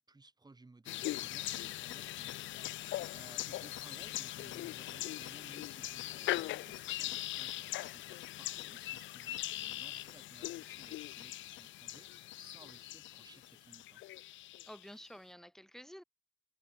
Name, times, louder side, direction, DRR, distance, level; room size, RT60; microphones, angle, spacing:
voice 1, 0.0-14.0, right 3 dB, 20° right, 6.4 m, -60 dB
sound 1, 0.9-14.9, left 15 dB, 75° left, 0.5 m, -41 dB
voice 2, 14.6-16.0, equal, ahead, 4.8 m, -51 dB
cardioid pair, 90°, 20 cm